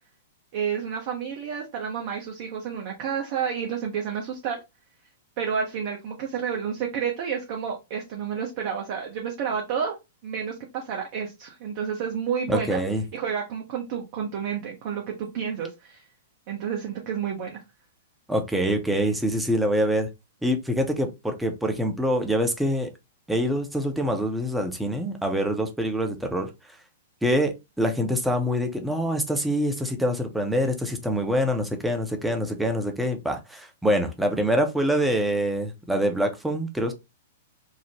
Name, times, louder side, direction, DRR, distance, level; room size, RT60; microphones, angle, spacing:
voice 1, 0.5-4.6 5.4-10.0 10.2-12.8 13.1-16.1 16.5-17.6, right 7 dB, 45° right, 0.6 m, -30 dB
voice 2, 12.5-13.0 18.3-20.1 20.4-22.9 23.3-26.5 27.2-36.9, equal, 5° right, 0.6 m, -25 dB
3.1 x 2.0 x 2.8 m
figure-of-eight pair, 105°, 0 cm